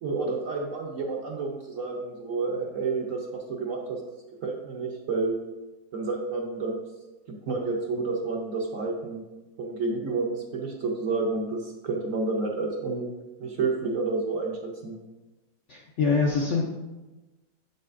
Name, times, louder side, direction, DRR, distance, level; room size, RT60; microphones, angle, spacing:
voice 1, 0.0-4.0 4.4-5.4 5.9-6.8 7.5-9.2 9.6-13.1 13.4-15.0, right 3 dB, 60° right, 0 dB, 1.0 m, -30 dB
voice 2, 15.7-16.6, left 4 dB, 60° left, -2 dB, 0.7 m, -24 dB
7.2 x 6.5 x 2.5 m, 1.1 s
omnidirectional pair, 1.9 m